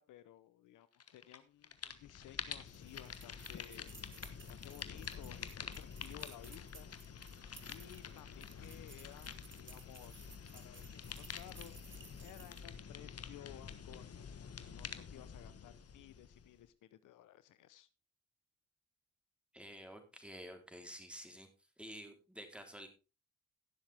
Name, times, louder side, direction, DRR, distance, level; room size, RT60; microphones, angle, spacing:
voice 1, 0.0-4.1 4.5-6.9 7.7-10.3 10.5-11.8 12.2-17.9, left 13 dB, 80° left, 14 dB, 0.8 m, -57 dB
sound 1, 1.0-1.4 1.6-16.7, left 7 dB, 50° left, 1.3 m, -48 dB
sound 2, 2.7-12.7, right 5 dB, 40° right, 2.0 m, -59 dB
voice 2, 19.5-21.5 21.8-22.9, equal, 5° right, 5 dB, 3.6 m, -50 dB
17.0 x 7.3 x 3.5 m, 0.30 s
supercardioid pair, 55°, 31 cm